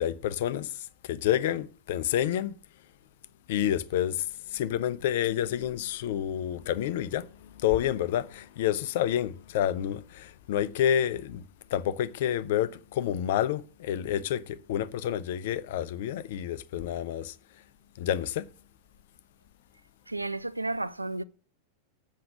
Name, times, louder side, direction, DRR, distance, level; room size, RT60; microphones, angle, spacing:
voice 1, 0.0-2.5 3.5-4.3 4.5-11.4 11.7-17.3 18.0-18.5, left 10 dB, 55° left, 0.6 m, -29 dB
voice 2, 20.1-21.2, right 2 dB, 85° right, 0.4 m, -32 dB
7.8 x 6.5 x 6.7 m
figure-of-eight pair, 90°, 0 cm